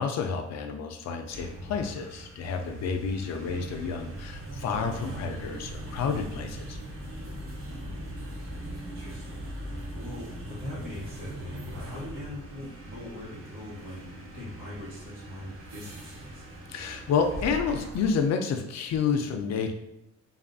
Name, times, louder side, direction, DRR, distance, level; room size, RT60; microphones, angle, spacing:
voice 1, 0.0-6.8 16.7-19.7, left 5 dB, 60° left, 5 dB, 0.5 m, -29 dB
sound 1, 1.1-18.3, right 1 dB, 45° right, 0.9 m, -40 dB
voice 2, 7.6-16.4, left 1 dB, 90° right, -8 dB, 1.3 m, -43 dB
2.6 x 2.4 x 2.5 m, 0.86 s
cardioid pair, 90°, 30 cm